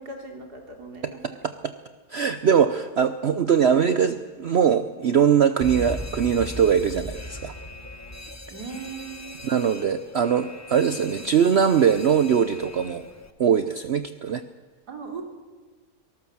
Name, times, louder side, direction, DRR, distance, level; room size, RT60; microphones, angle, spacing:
voice 1, 0.0-1.4 8.5-9.4 14.9-15.2, right 4 dB, 85° right, 3 dB, 3.6 m, -38 dB
voice 2, 2.1-7.5 9.4-13.1 13.4-14.4, right 7 dB, 50° right, 11 dB, 0.9 m, -21 dB
Alarm, 5.6-13.3, left 1 dB, 15° left, 0.8 m, -39 dB
24.0 x 18.5 x 7.3 m, 1.4 s
omnidirectional pair, 1.7 m